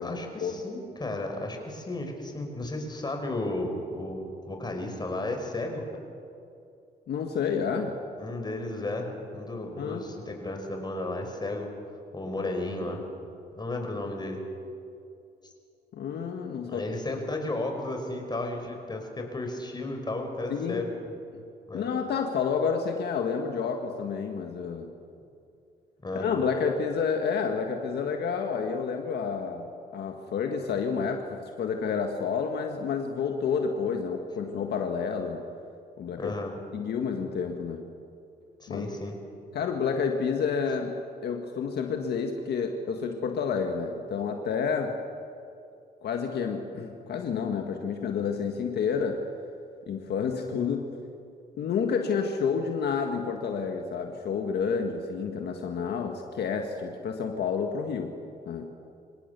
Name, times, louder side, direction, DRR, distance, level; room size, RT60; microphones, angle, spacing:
voice 1, 0.0-5.9 8.2-11.7 12.1-13.0 13.6-14.5 15.4-15.5 16.6-20.9 21.7-21.9 26.0-26.3 36.2-36.5 38.6-39.2, left 2 dB, 25° left, 3 dB, 5.1 m, -33 dB
voice 2, 7.1-8.0 9.8-10.1 12.4-12.5 13.0-13.1 15.9-16.8 20.5-20.8 21.3-21.4 21.7-24.9 26.1-29.7 29.9-35.4 36.0-36.3 36.7-37.9 38.7-38.9 39.5-41.0 41.2-45.0 46.0-49.3 49.9-50.9 51.6-58.1 58.5-58.7, left 6 dB, 70° left, 3 dB, 1.8 m, -29 dB
26.0 x 17.5 x 7.0 m, 2.5 s
cardioid pair, 85°, 18 cm